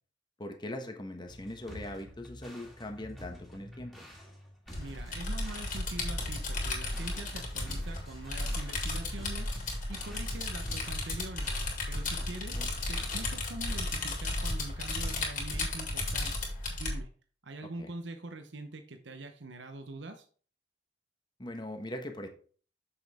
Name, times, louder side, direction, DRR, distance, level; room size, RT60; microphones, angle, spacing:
voice 1, 0.4-4.1 12.5-12.7 17.6-17.9 21.4-22.3, left 1 dB, 25° left, 5 dB, 1.2 m, -41 dB
sound 1, 1.3-14.2, left 1 dB, ahead, 2.1 m, -48 dB
sound 2, 4.7-17.0, left 2 dB, 45° left, 3.0 m, -34 dB
voice 2, 4.8-11.5 11.9-12.6 12.9-16.3 16.7-17.1 17.4-20.3, right 2 dB, 75° right, 6 dB, 0.9 m, -44 dB
7.4 x 7.0 x 3.6 m, 0.42 s
head